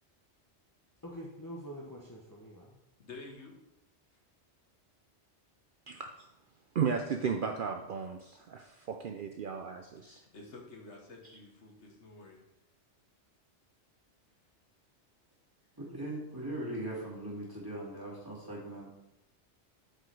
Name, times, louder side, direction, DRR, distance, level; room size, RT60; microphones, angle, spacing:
voice 1, 1.0-2.8, equal, 20° left, -2 dB, 0.9 m, -45 dB
voice 2, 3.0-3.5 10.0-12.4, left 3 dB, 80° left, 1 dB, 1.6 m, -50 dB
voice 3, 6.7-10.2 11.2-11.4, right 6 dB, 55° right, 4 dB, 0.6 m, -35 dB
voice 4, 15.8-18.9, right 1 dB, 20° right, -6 dB, 2.6 m, -40 dB
7.8 x 4.8 x 4.7 m, 0.88 s
omnidirectional pair, 1.2 m